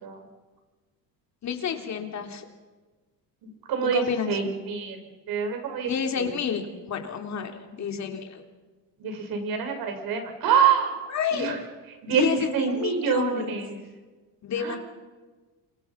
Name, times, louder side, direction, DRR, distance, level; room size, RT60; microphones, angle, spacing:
voice 1, 1.4-2.4 3.8-4.3 5.8-8.4 11.1-11.5 12.1-13.5 14.4-14.8, left 7 dB, 45° left, 4 dB, 3.2 m, -30 dB
voice 2, 3.4-4.0 4.3-5.0 5.3-5.9 6.2-6.3 9.0-10.9 11.3-11.6 12.0-12.2 12.5-13.7 14.6-14.8, right 7 dB, 65° right, 5 dB, 5.9 m, -26 dB
28.5 x 25.0 x 5.9 m, 1.3 s
cardioid pair, 110°, 39 cm